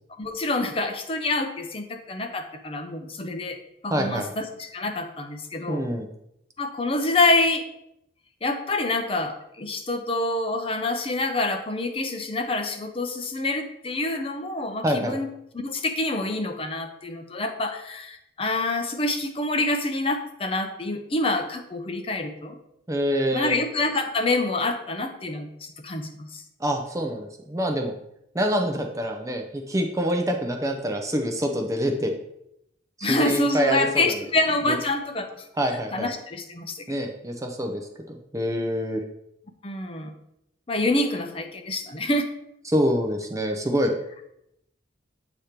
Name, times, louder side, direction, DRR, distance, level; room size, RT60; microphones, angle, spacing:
voice 1, 0.2-3.6 3.8-5.9 6.6-7.6 8.4-15.3 15.5-22.6 23.3-26.4 33.0-35.5 35.9-36.7 39.6-40.1 40.7-42.3, left 2 dB, 30° left, 5 dB, 0.6 m, -26 dB
voice 2, 3.9-4.3 5.7-6.1 14.8-15.2 22.9-23.6 26.6-27.9 28.3-32.1 33.0-34.2 34.7-34.8 35.6-36.1 36.9-39.0 42.6-43.9, equal, 15° right, 4 dB, 0.5 m, -26 dB
7.9 x 2.9 x 5.0 m, 0.79 s
head